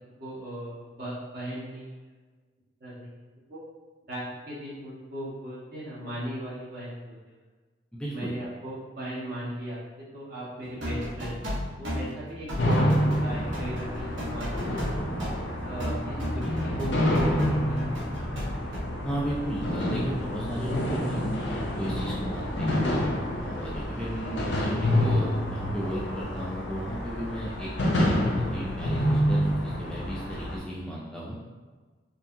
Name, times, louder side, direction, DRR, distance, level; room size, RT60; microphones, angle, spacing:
voice 1, 0.2-1.8 2.8-3.1 3.5-3.6 4.1-7.2 8.1-9.8 10.1-14.8 15.2-16.5 16.8-18.0, right 1 dB, 55° right, -8 dB, 1.4 m, -37 dB
voice 2, 7.9-8.3 19.0-21.3 21.8-22.8 23.4-31.4, equal, 5° left, -6 dB, 0.4 m, -35 dB
sound 1, 10.6-18.8, equal, 75° right, 1.2 m, -35 dB
sound 2, 12.6-30.6, equal, 65° left, 0.6 m, -28 dB
4.4 x 2.8 x 2.7 m, 1.4 s
head